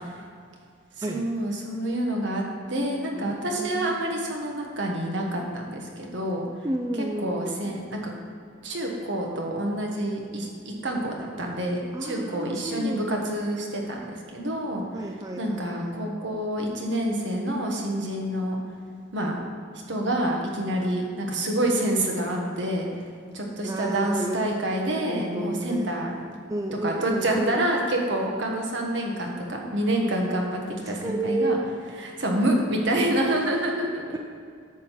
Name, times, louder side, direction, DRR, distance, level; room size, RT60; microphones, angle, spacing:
voice 1, 1.0-2.4 2.7-6.4 7.0-8.0 8.6-10.5 10.8-14.8 15.4-18.6 19.1-19.4 19.9-22.9 23.3-26.2 26.8-31.6 32.0-34.2, right 1 dB, 65° right, 0 dB, 1.5 m, -27 dB
voice 2, 3.1-3.9 6.6-7.7 11.9-13.4 14.9-16.2 23.6-24.4 25.1-25.9 26.5-27.6 30.9-31.6 34.1-34.2, right 1 dB, 15° right, 2 dB, 0.4 m, -31 dB
10.5 x 3.8 x 7.4 m, 2.2 s
head